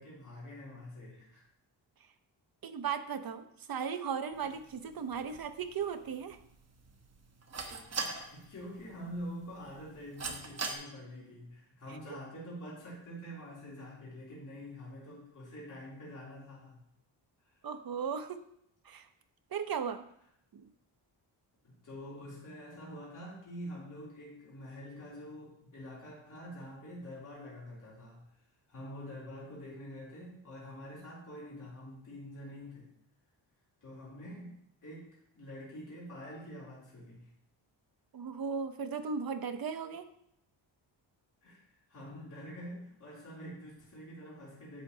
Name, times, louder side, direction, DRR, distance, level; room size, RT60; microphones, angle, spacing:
voice 1, 0.0-1.4 5.3-5.4 7.9-16.8 21.6-28.2 28.7-32.9 33.8-34.6 34.8-35.1 35.3-37.3 41.4-41.6 41.9-44.8, equal, 40° left, -6 dB, 3.0 m, -46 dB
voice 2, 2.6-6.4 12.1-12.2 17.6-18.4 18.9-19.1 19.5-20.1 20.5-20.7 38.1-40.1, right 6 dB, 50° right, 9 dB, 0.8 m, -36 dB
sound 1, 4.3-10.7, right 4 dB, 35° right, 1.1 m, -43 dB
10.0 x 7.4 x 2.8 m, 0.73 s
wide cardioid pair, 110°, 46 cm